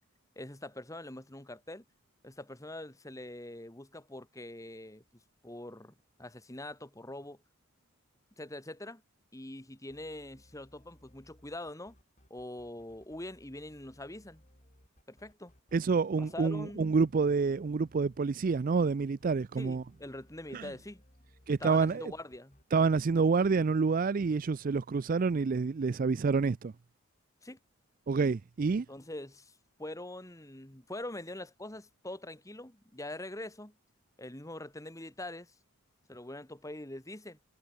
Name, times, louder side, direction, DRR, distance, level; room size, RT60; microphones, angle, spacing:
voice 1, 0.4-1.8 2.2-5.0 5.4-7.4 8.4-9.0 9.3-11.9 12.3-14.4 15.1-15.5 16.2-17.0 19.6-21.0 21.6-22.6 27.4-27.6 28.9-33.7 34.2-35.5 36.1-37.4, left 1 dB, 15° left, 1.9 m, -44 dB
sound 1, 9.9-23.1, equal, 35° left, 7.2 m, -62 dB
voice 2, 15.7-19.8 20.5-20.7 21.5-22.1 22.7-26.7 28.1-28.9, right 4 dB, 40° right, 0.4 m, -28 dB
head